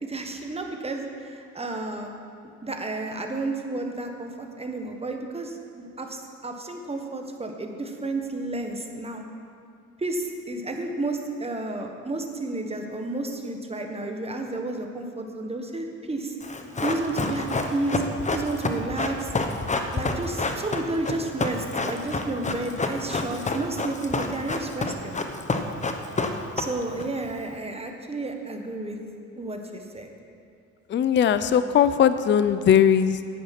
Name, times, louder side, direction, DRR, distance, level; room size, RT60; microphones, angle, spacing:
voice 1, 0.0-2.1 2.6-9.2 10.0-16.4 16.8-18.0 18.3-19.3 19.9-25.2 26.6-29.0 29.4-30.1, right 2 dB, 20° right, 4 dB, 1.3 m, -31 dB
Run, 16.4-27.0 27.3-27.4, left 3 dB, 25° left, 0.9 m, -28 dB
voice 2, 30.9-33.2, left 8 dB, 40° left, 12 dB, 0.4 m, -19 dB
9.8 x 8.7 x 5.9 m, 2.4 s
cardioid pair, 90°, 30 cm